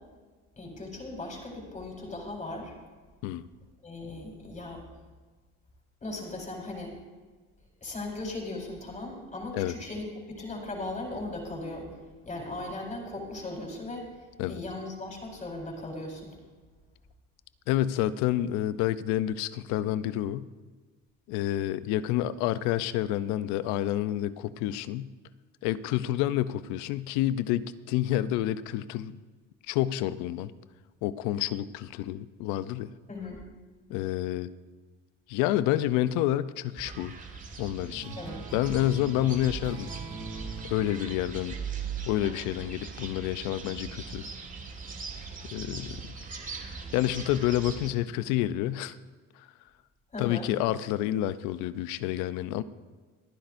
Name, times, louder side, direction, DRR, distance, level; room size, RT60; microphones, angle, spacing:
voice 1, 0.6-2.7 3.8-4.8 6.0-6.9 7.8-12.0 12.2-16.4 33.1-33.4 38.2-38.4 50.1-50.5, left 2 dB, 25° left, -1 dB, 4.3 m, -38 dB
voice 2, 17.7-20.5 21.3-25.1 25.6-29.2 29.7-30.5 31.0-32.9 33.9-34.5 35.3-37.1 37.6-38.2 38.5-39.9 40.6-41.6 42.0-44.2 45.5-46.0 46.7-49.0 49.4-49.5 50.2-52.6, left 13 dB, 80° left, 15 dB, 0.6 m, -29 dB
sound 1, 36.8-47.9, right 5 dB, 25° right, 1.9 m, -40 dB
sound 2, 37.8-42.7, right 3 dB, 50° right, 3.4 m, -44 dB
27.0 x 10.5 x 2.6 m, 1.4 s
cardioid pair, 100°, 30 cm